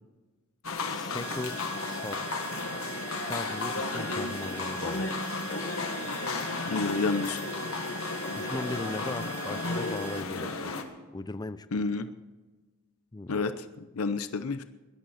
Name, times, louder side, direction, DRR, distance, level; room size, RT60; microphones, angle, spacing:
sound 1, 0.6-10.8, left 3 dB, 70° left, 1.6 m, -33 dB
voice 1, 0.8-1.6 1.9-2.4 3.2-5.1 8.3-10.7 11.1-11.7 13.1-13.4, left 2 dB, 20° left, 13 dB, 0.5 m, -38 dB
sound 2, 1.2-10.2, right 12 dB, 85° right, 0.7 m, -43 dB
voice 2, 6.7-7.4 11.7-12.1 13.3-13.6 14.0-14.6, left 3 dB, 85° left, 11 dB, 0.7 m, -29 dB
19.5 x 11.5 x 4.2 m, 1.2 s
head